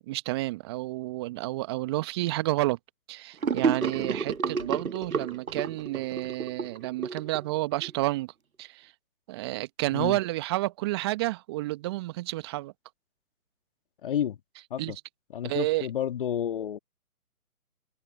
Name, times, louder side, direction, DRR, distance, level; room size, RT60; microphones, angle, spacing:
voice 1, 0.0-2.8 3.1-8.3 8.6-8.9 9.3-12.7 14.8-15.0 15.4-15.9, right 18 dB, 15° right, 1.3 m, -30 dB
Gurgling / Sink (filling or washing), 3.4-7.9, right 5 dB, 70° right, 1.3 m, -30 dB
voice 2, 14.0-14.4 14.7-15.0 15.3-16.8, left 10 dB, 35° left, 2.2 m, -30 dB
figure-of-eight pair, 145°, 45 cm